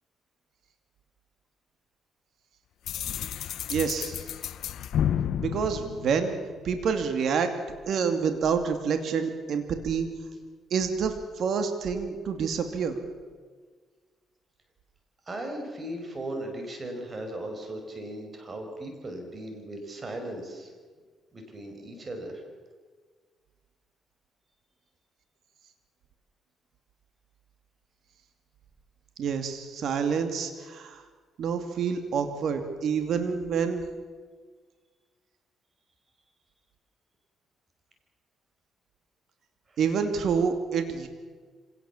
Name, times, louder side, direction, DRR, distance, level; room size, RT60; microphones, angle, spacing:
sound 1, 2.9-6.7, left 9 dB, 75° left, 0.8 m, -31 dB
voice 1, 3.7-4.2 5.4-6.4 6.6-7.6 7.9-10.1 10.7-13.0 29.2-31.0 31.4-33.8 39.8-41.1, right 6 dB, 65° right, 7 dB, 2.6 m, -28 dB
voice 2, 15.3-20.7 21.3-22.4 39.7-39.8, right 1 dB, 35° right, 4 dB, 5.5 m, -37 dB
25.5 x 18.5 x 7.3 m, 1.5 s
cardioid pair, 90°, 0 cm